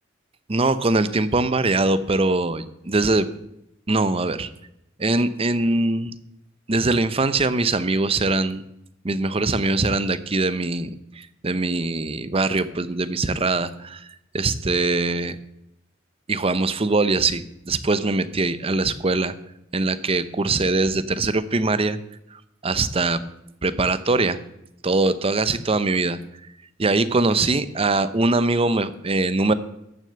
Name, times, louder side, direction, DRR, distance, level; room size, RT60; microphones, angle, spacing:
voice 1, 0.5-3.3 3.9-4.5 5.0-6.1 6.7-8.6 9.0-14.1 14.3-15.4 16.3-19.3 19.7-22.0 22.3-23.2 23.6-24.4 24.8-26.2 26.8-29.5, right 3 dB, 30° right, 14 dB, 0.7 m, -22 dB
13.5 x 6.4 x 7.8 m, 0.81 s
head